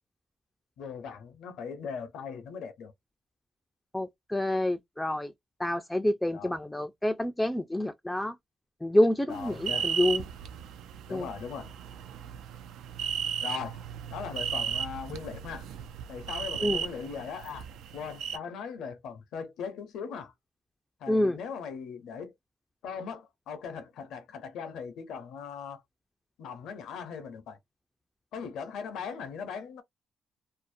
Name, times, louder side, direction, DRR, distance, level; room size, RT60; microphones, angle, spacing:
voice 1, 0.8-2.9 6.3-6.5 9.3-9.9 11.1-11.8 13.4-13.8 14.1-15.7 16.1-17.7 17.9-20.3 21.0-22.3 22.8-25.8 26.4-27.6 28.3-29.8, left 6 dB, 80° left, 0.7 m, -39 dB
voice 2, 3.9-5.3 5.6-8.4 8.8-10.2 11.1-11.3 16.6-16.8 21.1-21.4, left 1 dB, 10° left, 0.3 m, -27 dB
sound 1, 9.3-18.4, right 8 dB, 85° right, 0.3 m, -35 dB
2.5 x 2.0 x 2.5 m
cardioid pair, 90°, 0 cm